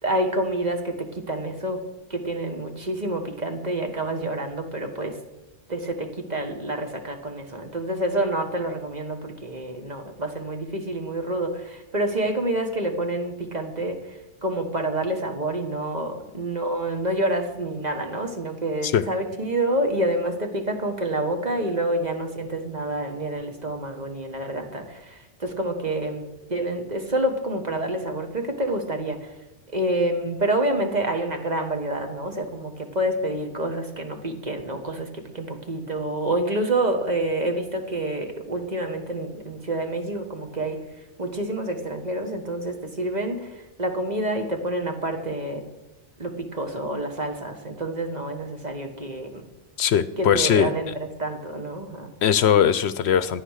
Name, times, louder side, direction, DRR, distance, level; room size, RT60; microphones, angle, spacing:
voice 1, 0.0-1.8 2.1-5.2 5.7-29.3 29.7-45.6 46.2-49.4 50.2-52.1, right 1 dB, 40° right, 4 dB, 1.5 m, -28 dB
voice 2, 49.8-50.7 52.2-53.4, left 8 dB, 70° left, 14 dB, 0.8 m, -20 dB
13.5 x 9.5 x 6.5 m, 1.0 s
omnidirectional pair, 1.2 m